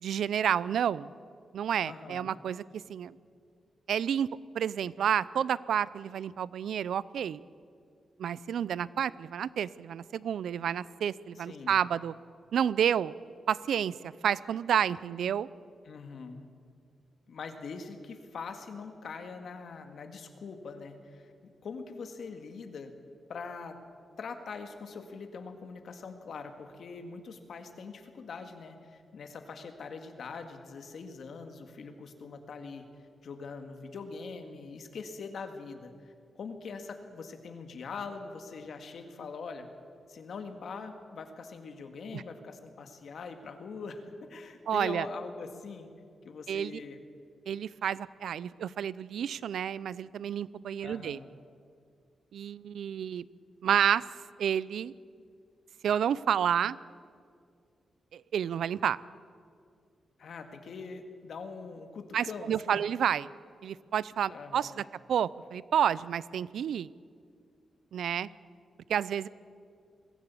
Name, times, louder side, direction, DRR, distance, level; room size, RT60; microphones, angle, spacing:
voice 1, 0.0-1.1 1.5-2.6 2.9-3.2 3.9-4.3 4.5-7.4 8.2-12.1 12.5-13.1 13.5-15.5 42.1-42.2 44.7-45.1 46.5-46.8 47.5-51.2 52.3-53.2 53.6-54.0 54.4-54.9 55.8-56.8 58.1-59.0 62.1-63.3 63.6-64.8 65.1-66.9 67.9-68.3 68.9-69.3, right 9 dB, 80° right, 20 dB, 0.5 m, -30 dB
voice 2, 1.8-2.3 11.4-11.8 15.9-16.4 17.3-21.3 21.6-22.9 23.3-23.8 24.2-32.9 33.2-39.7 40.1-45.9 46.3-47.0 50.8-51.3 60.2-62.8 64.3-64.9, left 4 dB, 55° left, 6 dB, 1.9 m, -43 dB
22.0 x 15.5 x 8.5 m, 2.3 s
wide cardioid pair, 165°, 0 cm